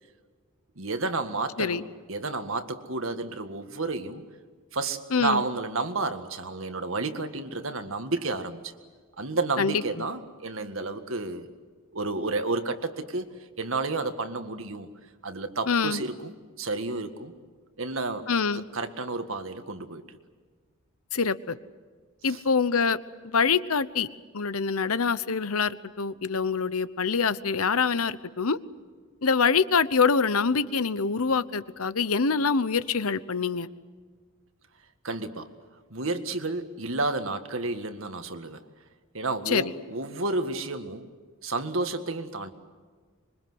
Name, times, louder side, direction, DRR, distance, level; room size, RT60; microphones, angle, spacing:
voice 1, 0.8-1.8 2.1-4.2 4.7-8.7 9.2-11.5 11.9-13.3 13.6-14.9 15.2-17.3 17.8-20.0 22.2-22.4 35.0-35.5 35.9-38.6 39.1-41.1 41.4-42.5, right 3 dB, 65° right, 8 dB, 1.8 m, -31 dB
voice 2, 5.1-5.4 9.6-9.8 15.7-16.0 18.3-18.6 21.1-21.6 22.2-23.0 23.2-24.1 24.3-28.6 29.2-33.7 39.5-39.6, left 5 dB, 90° left, 15 dB, 1.0 m, -25 dB
26.0 x 23.5 x 8.0 m, 1.5 s
head